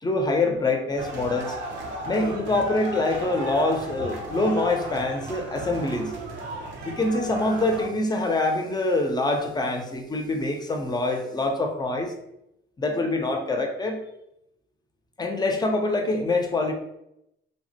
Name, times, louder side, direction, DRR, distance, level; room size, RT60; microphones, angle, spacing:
voice 1, 0.0-1.6 2.1-6.1 6.8-12.1 12.8-14.0 15.2-16.7, left 2 dB, 20° left, 3 dB, 0.5 m, -25 dB
sound 1, 1.0-7.9, right 1 dB, 70° right, 0.6 m, -35 dB
3.3 x 2.0 x 2.7 m, 0.81 s
cardioid pair, 90°, 20 cm